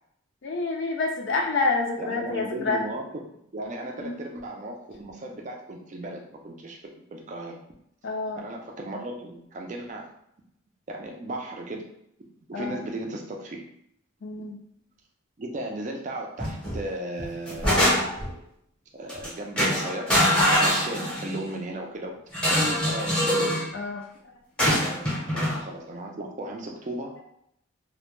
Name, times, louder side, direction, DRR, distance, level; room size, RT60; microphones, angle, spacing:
voice 1, 0.4-2.8 4.0-4.2 8.0-8.5 12.5-12.8 14.2-14.6 23.7-24.0, left 3 dB, 60° left, 1 dB, 0.4 m, -28 dB
voice 2, 2.0-3.1 3.5-7.6 8.4-10.1 10.9-11.9 12.5-13.6 15.4-17.9 18.9-22.2 22.5-23.3 24.8-27.2, right 1 dB, 35° right, 1 dB, 0.4 m, -36 dB
sound 1, 16.4-16.8 17.2-18.3 19.1-19.3 19.6-21.4 22.3-23.7 24.6-25.6, equal, 5° left, 0.7 m, -23 dB
2.1 x 2.1 x 3.0 m, 0.73 s
head